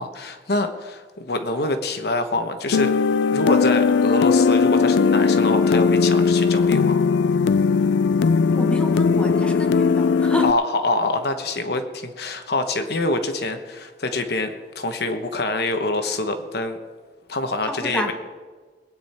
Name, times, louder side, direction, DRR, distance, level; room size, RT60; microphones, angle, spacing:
voice 1, 0.0-3.0 3.3-7.0 10.4-16.8 17.3-18.1, left 2 dB, 65° left, 7 dB, 1.1 m, -25 dB
sound 1, 2.7-10.5, left 5 dB, 85° left, 0.4 m, -18 dB
voice 2, 8.5-10.5 17.6-18.1, left 1 dB, 5° left, 3 dB, 1.3 m, -29 dB
22.0 x 9.1 x 4.4 m, 1.5 s
head